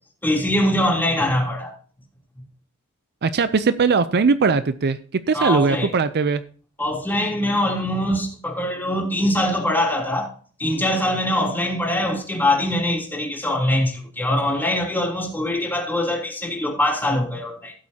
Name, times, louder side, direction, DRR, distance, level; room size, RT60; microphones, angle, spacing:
voice 1, 0.2-1.7 5.3-5.9 6.8-10.3 10.6-17.7, left 1 dB, 10° left, 3.1 m, -23 dB
voice 2, 3.2-5.0 5.3-6.4, right 4 dB, 45° right, 0.5 m, -19 dB
16.5 x 8.6 x 2.8 m
head